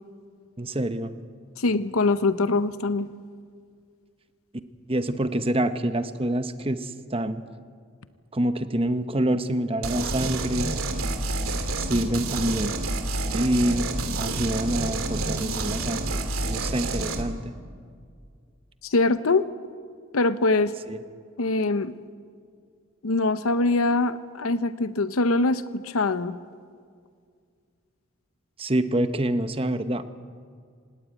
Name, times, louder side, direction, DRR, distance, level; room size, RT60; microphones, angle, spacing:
voice 1, 0.6-1.1 4.9-7.4 8.3-10.7 11.8-12.7 13.3-13.9 14.2-17.5 20.9-21.0 28.6-30.0, right 1 dB, 25° right, 10 dB, 1.0 m, -26 dB
voice 2, 1.6-3.1 18.8-19.5 20.1-20.7 21.4-21.9 23.0-26.4, left 3 dB, 85° left, 13 dB, 0.8 m, -23 dB
sound 1, 9.8-17.2, right 2 dB, 80° right, 2.5 m, -28 dB
26.5 x 18.5 x 9.0 m, 2.1 s
head